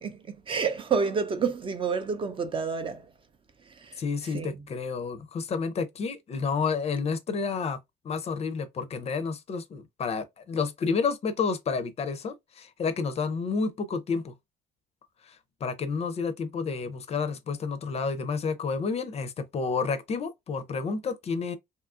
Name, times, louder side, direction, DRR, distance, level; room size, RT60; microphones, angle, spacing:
voice 1, 0.0-3.1 3.8-4.0 4.3-4.5, right 5 dB, 30° right, 0.5 m, -29 dB
voice 2, 4.0-7.8 8.0-14.3 15.2-21.6, left 5 dB, 40° left, 0.5 m, -30 dB
2.7 x 2.4 x 2.4 m
cardioid pair, 110°, 17 cm